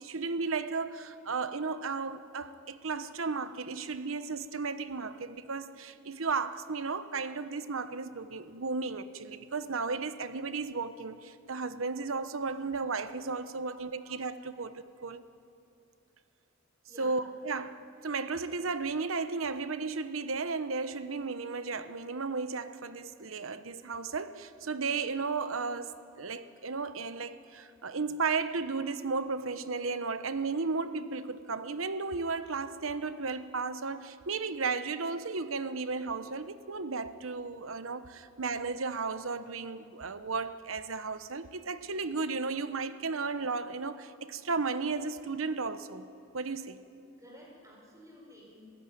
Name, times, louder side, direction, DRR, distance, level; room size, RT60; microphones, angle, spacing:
voice 1, 0.0-14.7 15.0-15.2 17.0-46.1 46.3-46.8, right 4 dB, 85° right, 12 dB, 1.0 m, -34 dB
voice 2, 13.7-14.1 14.6-14.7 16.9-17.2 47.2-48.6, equal, 15° right, -2 dB, 5.6 m, -53 dB
26.0 x 16.5 x 9.3 m, 2.7 s
head